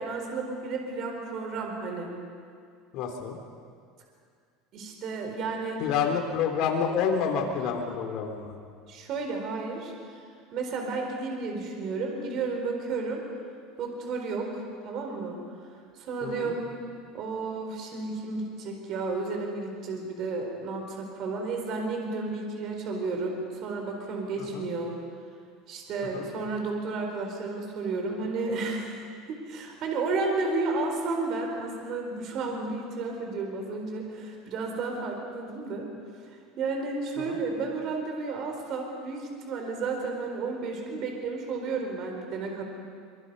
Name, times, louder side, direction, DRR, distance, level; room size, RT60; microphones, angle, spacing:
voice 1, 0.0-2.1 4.7-5.8 8.9-10.2 10.5-13.2 13.8-15.4 16.0-16.7 17.1-24.9 25.7-29.0 29.3-35.9 36.6-42.6, right 3 dB, 45° right, 2 dB, 4.3 m, -32 dB
voice 2, 2.9-3.4 5.8-8.6 16.2-16.5 24.4-24.7 26.1-26.3 37.2-37.4, left 6 dB, 55° left, 2 dB, 3.6 m, -29 dB
25.0 x 24.0 x 5.6 m, 2.2 s
supercardioid pair, 140°, 0 cm